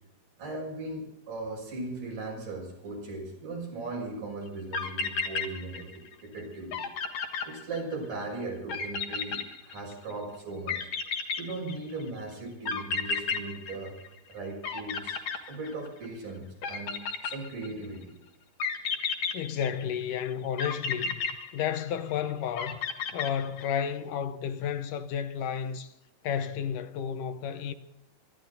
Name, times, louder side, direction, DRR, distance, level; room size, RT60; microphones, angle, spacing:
voice 1, 0.4-6.8 7.4-10.8 11.4-14.0 14.3-15.2 15.5-17.0 17.2-18.2, right 2 dB, 80° right, 7.7 m, -38 dB
sound 1, 4.5-4.6 4.7-6.1 6.4-6.5 6.7-8.1 8.7-10.1 10.7-12.0 12.7-14.3 14.6-16.1 16.6-17.9 18.6-20.0 20.6-22.1 22.6-23.8, left 5 dB, 60° left, 2.7 m, -33 dB
voice 2, 19.3-21.2 21.5-22.8 23.1-25.9 26.2-27.7, left 8 dB, 80° left, 2.5 m, -32 dB
25.0 x 12.5 x 4.0 m
omnidirectional pair, 3.7 m